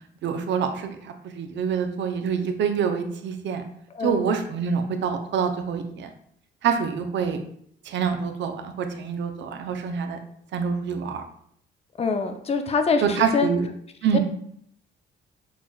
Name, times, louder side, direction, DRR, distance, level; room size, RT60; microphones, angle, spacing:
voice 1, 0.2-3.6 4.0-6.1 6.6-7.4 7.8-10.2 10.5-11.2 13.0-13.7 14.0-14.2, right 6 dB, 65° right, 6 dB, 0.6 m, -26 dB
voice 2, 12.0-13.5 14.1-14.2, left 4 dB, 30° left, 7 dB, 0.5 m, -24 dB
5.8 x 2.3 x 2.2 m, 0.67 s
cardioid pair, 90°, 20 cm